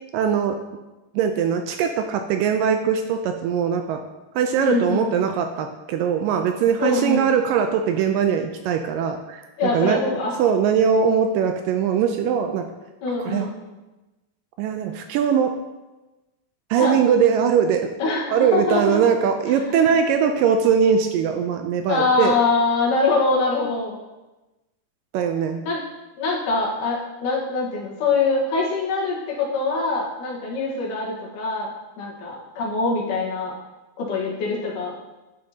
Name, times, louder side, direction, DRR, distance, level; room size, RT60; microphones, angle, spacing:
voice 1, 0.1-0.6 1.1-4.0 4.4-10.0 10.4-12.7 13.2-13.5 14.6-15.5 16.7-17.9 18.3-22.4 25.1-25.6, right 7 dB, 80° right, 6 dB, 2.0 m, -21 dB
voice 2, 4.6-5.0 6.8-7.3 9.6-10.4 13.0-13.5 16.8-17.0 18.0-19.0 19.5-19.9 21.9-24.0 25.6-25.8 26.2-31.7 32.0-33.5 34.0-34.9, left 3 dB, 65° left, -3 dB, 2.7 m, -23 dB
11.0 x 6.6 x 2.8 m, 1.1 s
omnidirectional pair, 4.3 m